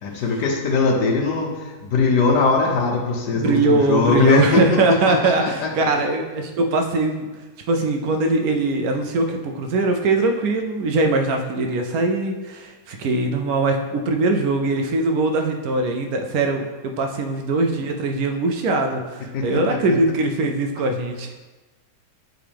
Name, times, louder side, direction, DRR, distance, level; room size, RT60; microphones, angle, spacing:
voice 1, 0.0-5.9 19.3-20.0, left 4 dB, 80° left, 1 dB, 1.5 m, -21 dB
voice 2, 3.3-21.3, right 2 dB, 70° right, 4 dB, 1.0 m, -21 dB
7.9 x 3.8 x 3.5 m, 1.2 s
omnidirectional pair, 1.8 m